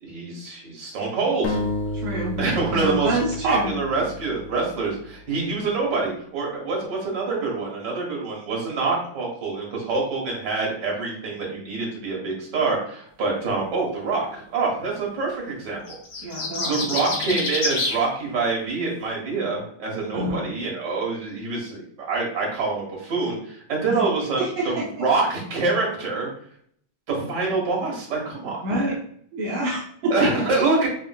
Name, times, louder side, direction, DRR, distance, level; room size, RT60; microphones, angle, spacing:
voice 1, 0.0-1.6 2.4-3.2 3.4-16.0 16.7-26.3 27.1-28.9 30.1-30.9, right 3 dB, 45° right, -2 dB, 1.7 m, -26 dB
sound 1, 1.4-5.1, left 1 dB, 80° left, 1.9 m, -31 dB
voice 2, 1.9-2.4 2.7-3.7 16.2-16.8 20.1-20.4 24.4-25.0 28.6-29.0 29.3-30.3, right 1 dB, 75° right, -4 dB, 1.2 m, -27 dB
sound 2, 15.9-18.0, left 3 dB, 65° left, 1.1 m, -27 dB
7.3 x 2.5 x 2.4 m, 0.62 s
omnidirectional pair, 3.4 m